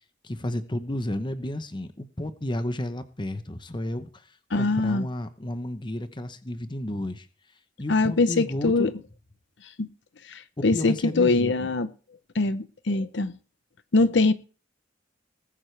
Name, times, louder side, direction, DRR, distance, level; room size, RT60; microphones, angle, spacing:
voice 1, 0.2-7.3 7.8-8.9 10.6-11.7, left 1 dB, 25° left, 0.9 m, -32 dB
voice 2, 4.5-5.1 7.9-8.9 9.8-9.9 10.3-11.9 12.3-13.3 13.9-14.3, left 3 dB, 70° left, 0.7 m, -23 dB
19.5 x 8.7 x 3.3 m
head